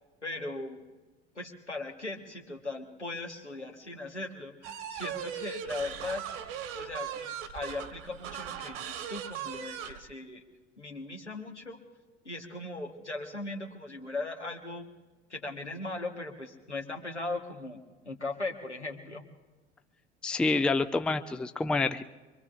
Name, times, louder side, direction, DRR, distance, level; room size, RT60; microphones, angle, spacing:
voice 1, 0.2-0.8 1.3-6.2 6.7-10.4 10.8-11.8 12.2-14.9 15.3-19.3, left 2 dB, 90° left, 2 dB, 1.4 m, -38 dB
sound 1, 4.6-10.0, right 9 dB, 50° right, 1.5 m, -39 dB
voice 2, 20.2-22.0, left 3 dB, 5° left, 10 dB, 0.4 m, -27 dB
24.0 x 24.0 x 2.5 m, 1.2 s
figure-of-eight pair, 70°, 34 cm